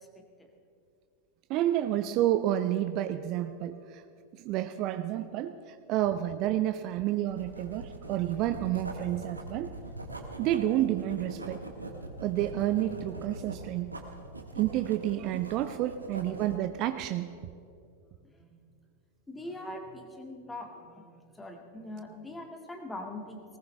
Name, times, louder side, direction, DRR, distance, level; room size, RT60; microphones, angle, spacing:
voice 1, 0.1-0.5 1.9-2.0 18.2-18.6 19.3-23.4, left 1 dB, 10° left, 3 dB, 1.8 m, -42 dB
voice 2, 1.5-4.0 4.3-9.7 10.4-11.6 12.2-13.9 14.6-17.3, right 13 dB, 40° right, 11 dB, 0.5 m, -30 dB
Writing, 7.3-16.6, right 2 dB, 80° right, 1.5 m, -42 dB
19.5 x 18.5 x 3.3 m, 2.4 s
figure-of-eight pair, 90°, 0 cm